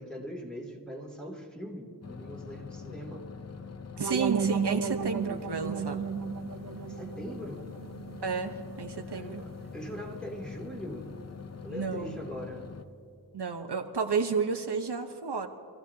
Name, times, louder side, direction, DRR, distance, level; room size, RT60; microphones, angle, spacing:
voice 1, 0.0-3.2 6.9-7.7 9.1-11.1 11.6-12.7, equal, ahead, -2 dB, 2.7 m, -41 dB
sound 1, 2.0-12.8, left 5 dB, 40° left, 0.7 m, -44 dB
sound 2, 4.0-8.9, right 6 dB, 55° right, 0.6 m, -34 dB
voice 2, 4.0-6.0 8.2-9.4 11.7-12.2 13.3-15.5, right 5 dB, 85° right, 4 dB, 1.0 m, -31 dB
27.0 x 15.0 x 2.8 m, 2.4 s
wide cardioid pair, 65°, 39 cm